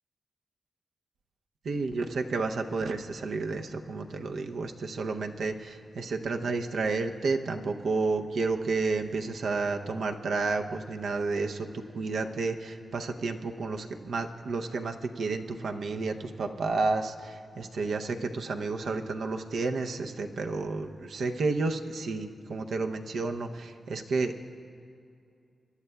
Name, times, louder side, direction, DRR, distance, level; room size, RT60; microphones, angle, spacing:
voice 1, 1.6-24.6, right 3 dB, 80° right, 4 dB, 0.6 m, -31 dB
24.0 x 11.0 x 2.3 m, 2.5 s
cardioid pair, 55°, 0 cm